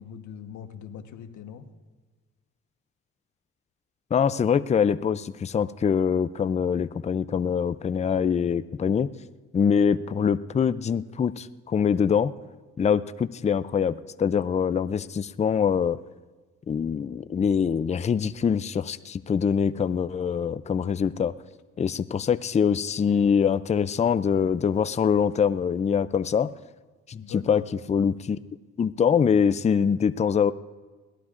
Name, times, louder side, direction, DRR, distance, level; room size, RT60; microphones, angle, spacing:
voice 1, 0.0-1.7 27.2-27.6, left 8 dB, 75° left, 7 dB, 1.2 m, -41 dB
voice 2, 4.1-9.1 9.5-12.3 12.8-16.0 16.7-21.3 21.8-26.5 27.1-27.6 27.9-28.4 28.8-30.5, left 7 dB, 25° left, 14 dB, 0.4 m, -24 dB
21.5 x 17.0 x 2.5 m, 1.3 s
cardioid pair, 90°, 30 cm